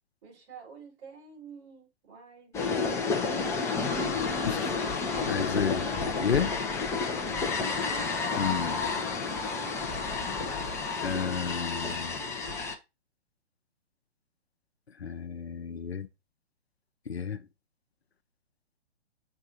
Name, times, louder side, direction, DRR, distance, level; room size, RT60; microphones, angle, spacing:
voice 1, 0.2-3.7 4.4-4.9 7.2-7.5, right 6 dB, 30° right, 4.3 m, -49 dB
sound 1, 2.5-12.8, left 4 dB, 10° left, 0.7 m, -30 dB
voice 2, 5.3-6.7 8.4-8.9 11.0-12.2 15.0-16.1 17.1-17.4, left 7 dB, 75° left, 0.8 m, -31 dB
7.0 x 3.6 x 4.1 m
figure-of-eight pair, 120°, 32 cm